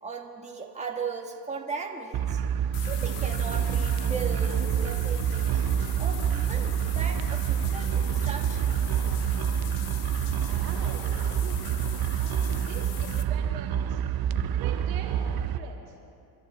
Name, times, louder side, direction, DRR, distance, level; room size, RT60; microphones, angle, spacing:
voice 1, 0.0-2.4 2.8-5.6 6.0-8.9, right 5 dB, 15° right, 1 dB, 1.6 m, -37 dB
sound 1, 2.1-15.6, right 9 dB, 45° right, 0.7 m, -27 dB
sound 2, 2.7-13.2, left 11 dB, 90° left, 1.1 m, -42 dB
voice 2, 10.5-11.7 12.1-15.9, right 7 dB, 85° right, -1 dB, 2.6 m, -44 dB
29.5 x 11.5 x 3.6 m, 2.5 s
supercardioid pair, 85°, 49 cm